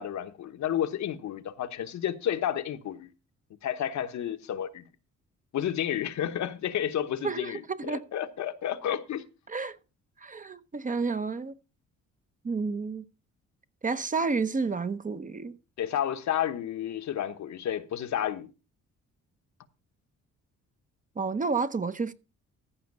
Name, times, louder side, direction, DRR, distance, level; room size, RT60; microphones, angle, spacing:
voice 1, 0.0-3.1 3.6-4.8 5.5-9.2 15.8-18.5, left 10 dB, 70° left, 1.1 m, -31 dB
voice 2, 7.2-8.0 9.5-9.8 10.2-11.5 12.4-13.0 13.8-15.6 21.2-22.1, right 4 dB, 25° right, 0.8 m, -30 dB
14.5 x 5.8 x 5.3 m
cardioid pair, 90°, 30 cm